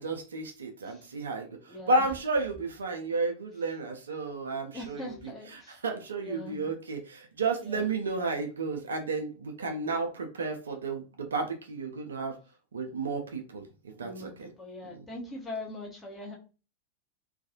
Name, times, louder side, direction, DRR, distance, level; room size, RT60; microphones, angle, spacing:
voice 1, 0.0-12.4 12.7-14.5 14.9-15.0, right 3 dB, 70° right, 5 dB, 0.5 m, -32 dB
voice 2, 1.7-2.1 4.7-5.8 6.2-6.6 7.6-7.9 14.0-16.4, left 2 dB, 15° left, -3 dB, 1.0 m, -42 dB
2.5 x 2.3 x 2.6 m, 0.33 s
figure-of-eight pair, 90°, 0 cm